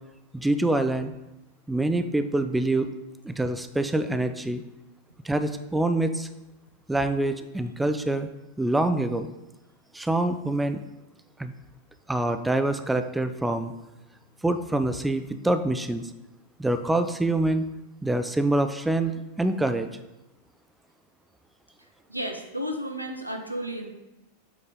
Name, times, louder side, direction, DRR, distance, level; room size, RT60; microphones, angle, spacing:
voice 1, 0.3-1.1 1.7-2.9 3.2-4.6 5.2-6.3 6.9-8.3 8.6-9.3 9.9-10.8 11.4-11.5 12.1-13.7 14.4-16.0 16.6-17.7 18.0-19.9, right 2 dB, 5° right, 9 dB, 0.4 m, -25 dB
voice 2, 22.1-23.9, equal, 85° right, 4 dB, 0.7 m, -32 dB
7.5 x 3.8 x 3.6 m, 0.98 s
figure-of-eight pair, 90°, 0 cm